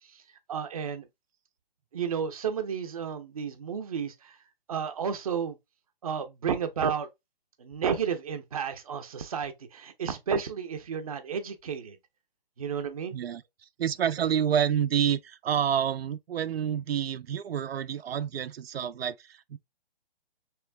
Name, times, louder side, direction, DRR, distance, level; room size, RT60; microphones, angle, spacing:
voice 1, 0.5-1.1 1.9-4.4 4.7-5.6 6.0-7.1 7.6-12.0 12.6-13.1, right 7 dB, 40° right, 0.6 m, -32 dB
voice 2, 13.1-19.6, right 9 dB, 85° right, 0.5 m, -28 dB
3.4 x 3.0 x 3.3 m
hypercardioid pair, 170°, 30 cm